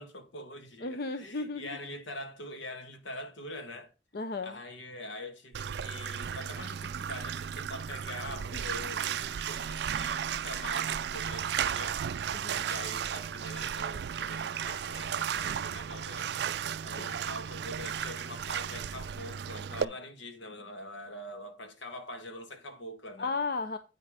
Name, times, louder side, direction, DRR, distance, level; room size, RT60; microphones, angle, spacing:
voice 1, 0.0-3.9 4.4-12.0 12.6-16.3 16.8-23.3, left 1 dB, 80° left, 1.7 m, -44 dB
voice 2, 0.8-1.8 4.1-4.6 12.3-12.7 17.0-17.1 23.2-23.8, left 3 dB, 55° left, 0.6 m, -34 dB
Bathtub (filling or washing), 5.5-19.8, right 8 dB, 60° right, 0.3 m, -34 dB
8.9 x 5.4 x 5.0 m
head